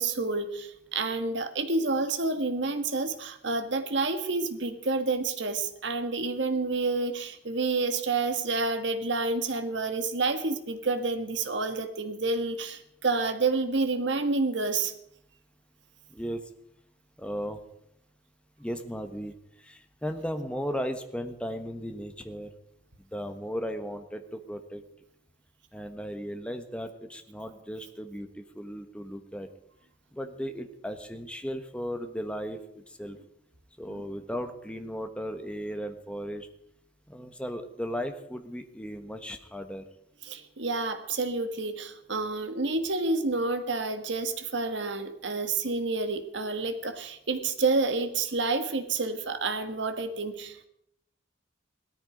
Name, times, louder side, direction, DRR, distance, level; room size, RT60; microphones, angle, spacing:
voice 1, 0.0-14.9 33.9-34.0 40.2-50.7, right 3 dB, 65° right, 9 dB, 1.5 m, -29 dB
voice 2, 16.1-16.4 17.2-17.6 18.6-22.5 23.1-24.8 25.7-29.5 30.1-33.2 33.8-36.5 37.1-39.8, equal, 5° left, 7 dB, 1.2 m, -36 dB
18.0 x 13.5 x 5.1 m, 0.76 s
head